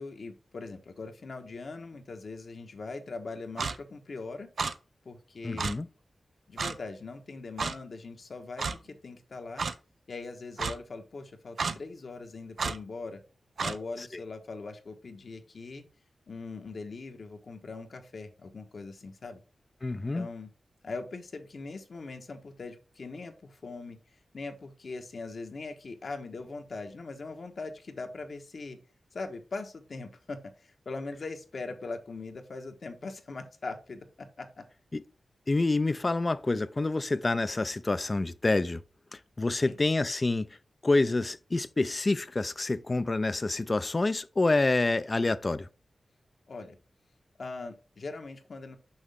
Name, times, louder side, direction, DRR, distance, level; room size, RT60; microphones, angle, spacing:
voice 1, 0.0-4.5 5.0-5.7 6.5-9.6 10.1-13.2 13.6-15.8 16.3-19.4 20.1-20.5 20.8-24.0 24.3-28.8 29.1-34.6 39.6-39.7 46.5-46.8 47.4-48.8, left 3 dB, 70° left, 1.3 m, -41 dB
Clock, 3.6-3.8 4.6-4.7 5.6-5.7 6.6-6.8 7.6-7.7 8.6-8.8 9.6-9.7 10.6-10.7 11.6-11.8 12.6-12.8 13.6-13.8, right 4 dB, 75° right, 0.6 m, -30 dB
voice 2, 5.4-5.9 14.0-14.2 19.8-20.3 34.9-35.0 35.5-38.8 39.1-40.5 40.8-45.7, left 2 dB, 40° left, 0.5 m, -27 dB
6.3 x 5.4 x 3.6 m
cardioid pair, 50°, 0 cm